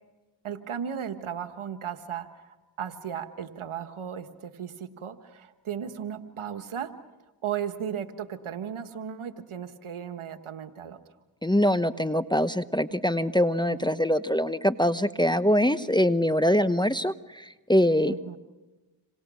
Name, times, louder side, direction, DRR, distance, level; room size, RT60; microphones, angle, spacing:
voice 1, 0.4-6.9 7.4-11.0 13.7-14.0 18.0-18.4, right 8 dB, 85° right, 9 dB, 1.5 m, -36 dB
voice 2, 11.4-18.1, equal, 10° left, 12 dB, 1.0 m, -23 dB
27.0 x 27.0 x 6.3 m, 1.2 s
cardioid pair, 40°, 48 cm